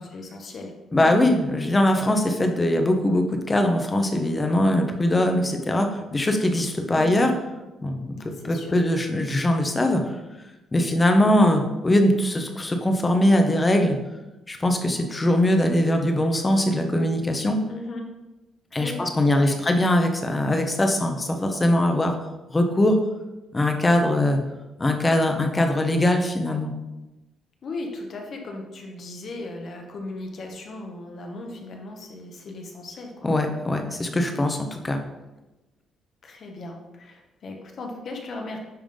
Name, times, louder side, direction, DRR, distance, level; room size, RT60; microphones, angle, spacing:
voice 1, 0.1-0.7 1.0-1.1 6.9-7.1 8.3-8.8 17.7-18.0 18.8-19.7 27.6-33.3 36.2-38.6, left 2 dB, 55° left, 2 dB, 1.4 m, -37 dB
voice 2, 0.9-7.3 7.8-10.0 10.7-14.0 14.5-17.6 18.7-22.1 22.5-23.0 23.5-24.4 24.8-26.7 33.2-34.6 34.8-35.0, left 1 dB, 25° left, 5 dB, 1.0 m, -21 dB
10.0 x 3.6 x 3.8 m, 1.0 s
cardioid pair, 90°, 0 cm